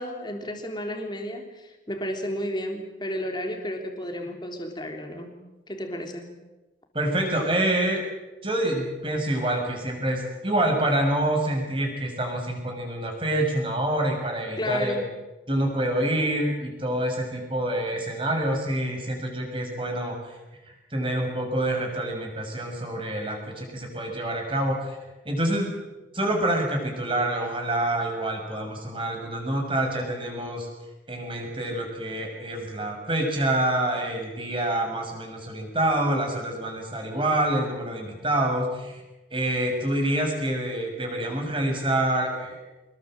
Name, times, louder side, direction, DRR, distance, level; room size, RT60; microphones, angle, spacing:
voice 1, 0.0-6.4 14.6-15.1, equal, 25° left, 3 dB, 3.6 m, -32 dB
voice 2, 6.9-8.0 8.4-15.0 15.5-20.4 20.6-25.0 25.2-25.7 26.1-30.7 31.1-39.0 39.3-42.6, right 1 dB, 25° right, 2 dB, 6.6 m, -27 dB
26.0 x 21.0 x 7.9 m, 1.1 s
head